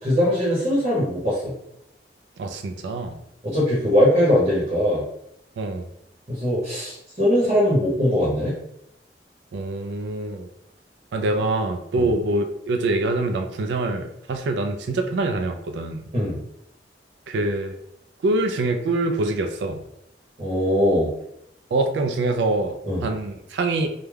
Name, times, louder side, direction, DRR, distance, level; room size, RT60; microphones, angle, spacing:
voice 1, 0.0-1.5 3.4-5.0 6.3-8.5 11.9-12.1 16.1-16.4 20.4-21.1 22.9-23.0, equal, 40° right, -7 dB, 0.8 m, -21 dB
voice 2, 2.4-3.2 5.6-5.9 9.5-10.5 11.1-16.0 17.3-17.7 18.2-19.8 21.7-22.7 23.0-23.9, right 2 dB, 80° right, 6 dB, 0.3 m, -25 dB
2.3 x 2.1 x 3.2 m, 0.78 s
head